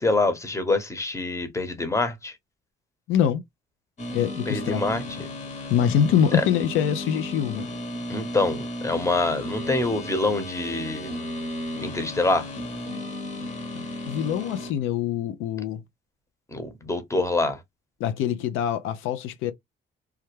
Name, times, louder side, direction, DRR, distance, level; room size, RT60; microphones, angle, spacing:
voice 1, 0.0-2.3 4.5-5.0 6.3-6.4 8.1-11.1 11.8-12.5 16.5-17.6, left 2 dB, 15° left, 0.9 m, -25 dB
voice 2, 3.1-3.4 4.1-4.8 5.7-7.7 13.7-15.8 18.0-19.5, left 9 dB, 90° left, 0.4 m, -24 dB
sound 1, 4.0-14.7, left 1 dB, 35° left, 1.0 m, -34 dB
3.3 x 2.2 x 3.1 m
cardioid pair, 90°, 20 cm